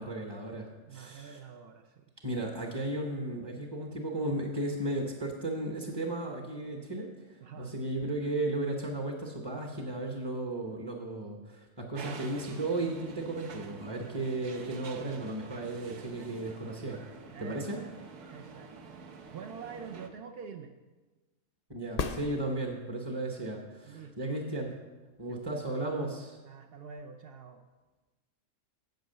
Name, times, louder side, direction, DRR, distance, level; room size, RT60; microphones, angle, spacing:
voice 1, 0.0-1.4 2.2-17.0 17.4-17.8 21.7-24.8 25.2-26.4, right 2 dB, 20° right, 1 dB, 0.8 m, -35 dB
voice 2, 0.9-2.1 7.4-7.7 17.3-17.9 18.3-18.9 19.3-20.7 23.9-24.4 25.3-25.4 26.5-27.6, right 6 dB, 60° right, 4 dB, 0.6 m, -46 dB
sound 1, 11.9-20.1, right 5 dB, 90° right, 1.5 m, -47 dB
sound 2, 21.9-23.1 27.0-27.1, left 4 dB, 70° left, 0.3 m, -36 dB
9.2 x 8.0 x 6.7 m, 1.2 s
omnidirectional pair, 1.6 m